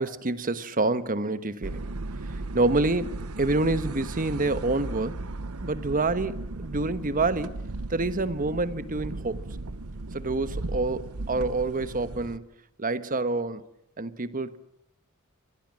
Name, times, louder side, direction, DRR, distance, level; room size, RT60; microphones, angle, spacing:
voice 1, 0.0-1.9 2.5-5.2 5.6-7.5 7.9-9.5 10.1-12.4 12.8-13.6 14.0-14.6, right 2 dB, 40° right, 1.2 m, -27 dB
sound 1, 1.6-12.4, right 2 dB, 75° right, 1.0 m, -36 dB
28.5 x 23.0 x 7.6 m
head